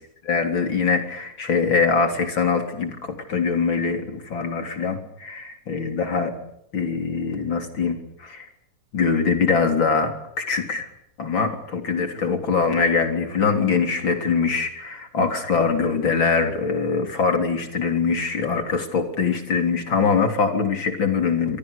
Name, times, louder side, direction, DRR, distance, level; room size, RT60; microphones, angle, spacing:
voice 1, 0.2-6.3 6.7-8.5 8.9-10.8 11.2-21.6, left 5 dB, 80° left, 5 dB, 4.3 m, -23 dB
27.0 x 24.5 x 6.9 m, 0.77 s
omnidirectional pair, 2.1 m